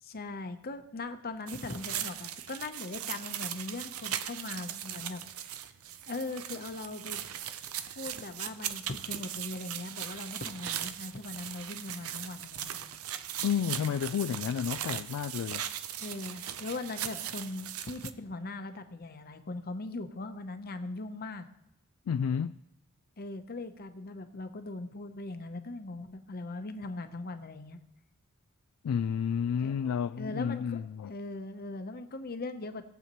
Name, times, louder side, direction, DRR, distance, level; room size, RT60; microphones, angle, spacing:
voice 1, 0.0-5.2 6.1-7.2 7.9-12.8 16.0-21.5 23.2-27.8 29.6-29.7 30.2-30.8 31.1-32.8, left 2 dB, 45° left, 0.8 m, -40 dB
sound 1, 1.5-18.1, right 10 dB, 85° right, 0.6 m, -39 dB
voice 2, 13.4-15.6 22.1-22.6 28.8-31.1, left 7 dB, 85° left, 0.3 m, -31 dB
18.5 x 8.0 x 3.0 m
head